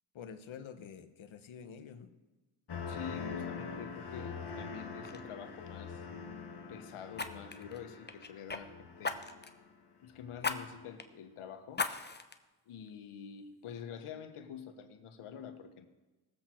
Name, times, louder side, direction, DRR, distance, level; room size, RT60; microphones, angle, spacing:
voice 1, 0.1-2.2, left 7 dB, 70° left, 9 dB, 1.2 m, -48 dB
sound 1, 2.7-9.7 10.1-10.6, left 5 dB, 50° left, 1.6 m, -44 dB
voice 2, 2.9-6.0 6.7-9.2 10.0-11.9 12.7-15.9, left 8 dB, 85° left, 7 dB, 1.4 m, -47 dB
Fire, 4.5-4.7 5.0-5.2 7.1-8.6 9.0-9.6 10.4-10.6 11.0-11.1 11.7-12.3 12.9-13.0, left 4 dB, 20° left, 0.9 m, -37 dB
19.0 x 7.7 x 4.5 m, 1.2 s
cardioid pair, 70°, 49 cm